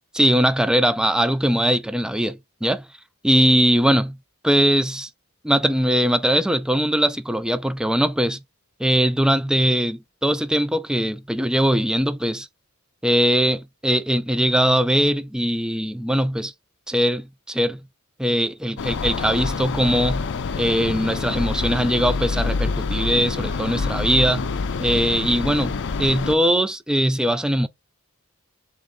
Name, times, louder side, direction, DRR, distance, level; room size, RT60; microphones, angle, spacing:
voice 1, 0.1-2.8 3.2-4.2 4.4-5.1 5.4-8.4 8.8-12.5 13.0-16.5 16.9-17.8 18.2-20.3 20.6-24.5 24.8-27.7, equal, 5° right, 0.3 m, -21 dB
sound 1, 18.8-26.3, left 4 dB, 60° left, 0.5 m, -26 dB
3.9 x 3.1 x 3.6 m
head